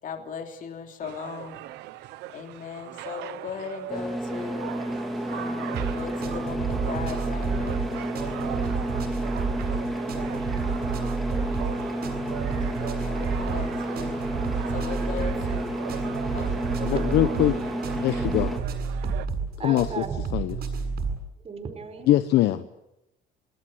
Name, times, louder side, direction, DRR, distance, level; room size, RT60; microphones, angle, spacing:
voice 1, 0.0-1.7 1.9-2.0 2.3-4.8 5.3-7.8 12.8-14.2 14.7-15.8 16.3-16.8, left 6 dB, 50° left, 5 dB, 3.3 m, -38 dB
sound 1, 1.0-19.3, right 15 dB, 90° right, 1.0 m, -40 dB
sound 2, 3.9-18.6, right 1 dB, ahead, 3.0 m, -31 dB
sound 3, 5.7-21.2, right 5 dB, 65° right, 7.7 m, -31 dB
voice 2, 16.8-17.5 18.0-18.5 19.6-20.0 20.3-20.5 22.1-22.6, left 14 dB, 80° left, 11 dB, 1.0 m, -22 dB
voice 3, 19.5-20.1 21.4-22.1, right 5 dB, 35° right, 8 dB, 4.9 m, -35 dB
29.5 x 19.5 x 8.0 m, 0.91 s
cardioid pair, 110°, 17 cm